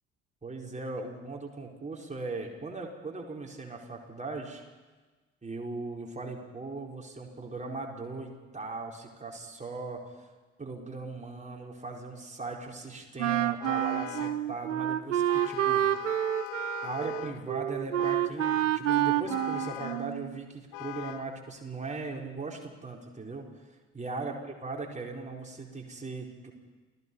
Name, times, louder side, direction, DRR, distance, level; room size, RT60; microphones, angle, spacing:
voice 1, 0.4-4.6 5.4-10.2 10.6-16.1 16.8-23.5 23.9-26.5, right 3 dB, 20° right, -1 dB, 4.6 m, -39 dB
Wind instrument woodwind instrument, 13.2-20.4, right 12 dB, 85° right, 0.6 m, -28 dB
Vehicle horn car horn honking, 13.6-14.5 15.3-17.5 18.0-18.8 19.3-20.1 20.7-21.3, left 20 dB, 55° left, 0.7 m, -41 dB
28.5 x 17.5 x 5.5 m, 1.3 s
figure-of-eight pair, 50°, 36 cm